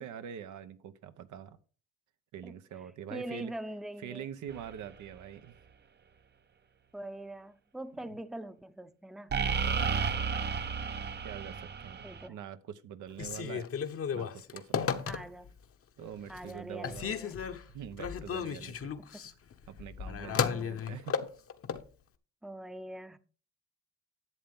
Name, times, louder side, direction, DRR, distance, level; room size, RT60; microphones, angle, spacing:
voice 1, 0.0-1.6 2.3-3.5 4.0-5.6 8.1-8.2 9.6-10.1 11.2-13.7 14.1-15.1 16.0-17.1 17.7-18.9 19.7-21.3, right 9 dB, 75° right, 0.9 m, -44 dB
voice 2, 3.1-4.2 6.9-9.4 12.0-12.4 15.1-15.5 16.3-17.4 19.0-19.3 20.2-20.8 22.4-23.2, right 1 dB, ahead, 0.7 m, -43 dB
sound 1, 4.5-4.7 9.3-12.3, right 5 dB, 35° right, 0.7 m, -32 dB
Telephone, 13.1-15.6 16.1-16.6 16.8-21.9, left 7 dB, 50° left, 1.0 m, -34 dB
11.0 x 7.8 x 3.6 m
cardioid pair, 90°, 30 cm